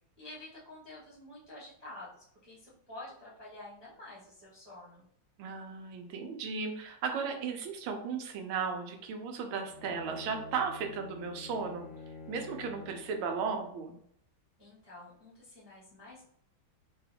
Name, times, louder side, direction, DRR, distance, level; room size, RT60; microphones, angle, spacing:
voice 1, 0.2-5.0 14.6-16.2, left 2 dB, 10° right, -7 dB, 0.9 m, -49 dB
voice 2, 5.4-11.9 12.3-14.0, right 5 dB, 90° right, 4 dB, 1.5 m, -35 dB
Bowed string instrument, 9.6-13.9, left 4 dB, 90° left, 1.6 m, -48 dB
3.9 x 2.2 x 3.3 m, 0.69 s
omnidirectional pair, 2.2 m